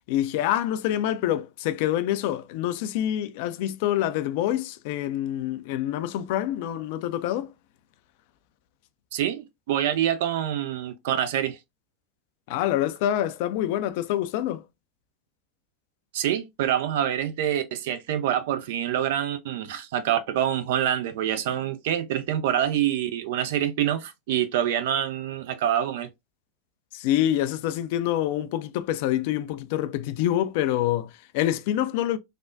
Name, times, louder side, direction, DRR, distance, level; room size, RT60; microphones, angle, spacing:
voice 1, 0.1-7.5 12.5-14.6 26.9-32.2, left 12 dB, 60° left, 0.3 m, -26 dB
voice 2, 9.1-11.6 16.1-26.1, right 10 dB, 65° right, 0.4 m, -26 dB
3.3 x 2.2 x 2.5 m
figure-of-eight pair, 85°, 0 cm